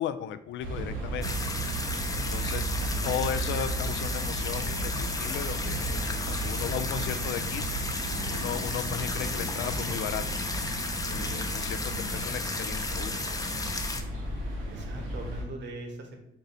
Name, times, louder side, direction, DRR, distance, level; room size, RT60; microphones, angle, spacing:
voice 1, 0.0-1.3 2.1-2.8 3.0-7.7 8.3-10.2 11.1-11.8 12.1-13.2, left 10 dB, 70° left, 12 dB, 0.4 m, -35 dB
sound 1, 0.6-15.4, right 2 dB, 90° right, 1.1 m, -34 dB
sound 2, 1.2-14.0, left 3 dB, 20° left, 0.5 m, -34 dB
voice 2, 2.6-3.2 11.8-12.2 14.7-16.2, right 1 dB, 65° right, 3 dB, 1.1 m, -42 dB
4.6 x 2.6 x 4.0 m, 0.82 s
cardioid pair, 90°, 20 cm